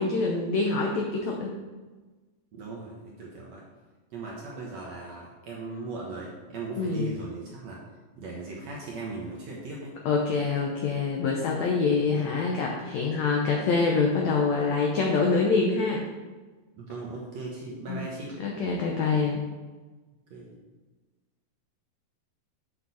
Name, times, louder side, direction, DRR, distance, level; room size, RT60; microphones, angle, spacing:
voice 1, 0.0-1.5 6.8-7.1 10.0-16.1 17.9-18.0 18.4-19.4, left 4 dB, 80° left, 0 dB, 1.6 m, -25 dB
voice 2, 2.5-3.6 4.1-7.8 8.2-10.0 16.8-18.4 20.3-20.6, right 3 dB, 65° right, -3 dB, 1.8 m, -38 dB
8.1 x 6.2 x 4.1 m, 1.3 s
omnidirectional pair, 4.3 m